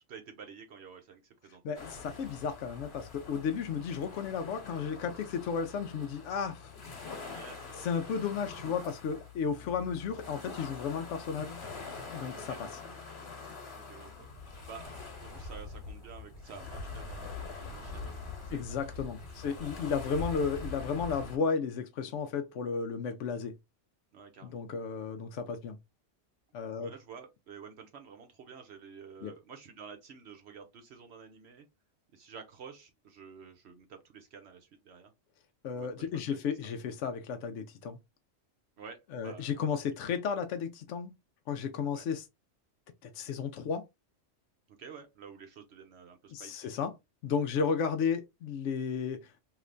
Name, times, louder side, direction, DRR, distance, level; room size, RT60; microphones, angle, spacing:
voice 1, 0.1-1.8 7.3-7.9 12.3-12.6 13.7-14.9 15.2-17.3 17.6-19.0 19.6-20.4 24.1-24.6 26.8-31.7 32.1-35.1 35.7-36.7 38.8-39.8 41.9-42.1 44.7-46.8 47.5-47.7, right 6 dB, 70° right, 0.9 m, -50 dB
voice 2, 1.6-6.7 7.8-11.6 12.1-12.7 18.5-23.5 24.4-25.8 26.5-26.9 29.2-29.3 35.6-38.0 39.1-41.1 41.5-42.2 43.0-43.8 46.3-46.9 47.2-49.3, left 6 dB, 75° left, 0.9 m, -33 dB
sound 1, 1.7-21.4, left 4 dB, 60° left, 1.4 m, -44 dB
3.2 x 2.8 x 2.5 m
omnidirectional pair, 1.2 m